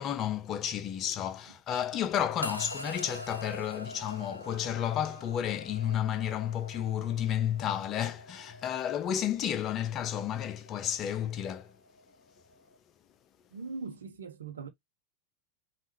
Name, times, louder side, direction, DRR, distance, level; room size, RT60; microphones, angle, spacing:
voice 1, 0.0-11.7, left 10 dB, 30° left, 0.8 m, -32 dB
sound 1, 2.4-12.8, left 1 dB, 90° left, 0.6 m, -45 dB
voice 2, 13.5-14.7, right 4 dB, 65° right, 1.0 m, -40 dB
5.5 x 2.7 x 3.1 m
figure-of-eight pair, 90°, 0 cm